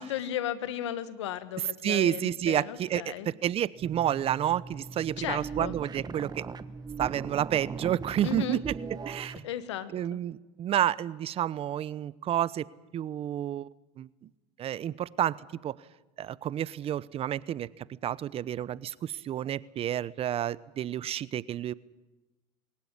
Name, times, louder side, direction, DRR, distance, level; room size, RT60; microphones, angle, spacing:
voice 1, 0.0-3.3 5.2-5.7 8.2-8.6 9.4-10.2, left 11 dB, 90° left, 13 dB, 1.6 m, -35 dB
voice 2, 1.8-3.0 3.4-6.5 7.0-8.6 9.1-9.3 9.9-12.7 12.9-13.7 14.0-14.1 14.6-15.4 15.6-15.7 16.2-17.7 18.0-21.7, right 11 dB, 45° right, 20 dB, 0.8 m, -30 dB
sound 1, 3.8-9.5, right 5 dB, 25° right, 1.3 m, -39 dB
23.0 x 16.0 x 9.7 m, 1.1 s
hypercardioid pair, 90°, 15 cm